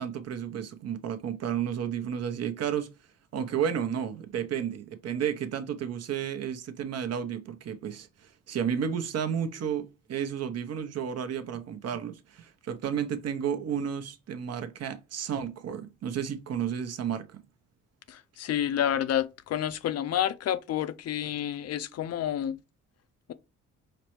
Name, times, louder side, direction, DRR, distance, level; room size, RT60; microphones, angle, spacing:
voice 1, 0.0-2.9 3.3-17.4, right 8 dB, 55° right, 0.7 m, -32 dB
voice 2, 18.1-22.6, left 10 dB, 55° left, 0.5 m, -29 dB
5.1 x 2.1 x 2.9 m
cardioid pair, 90°, 30 cm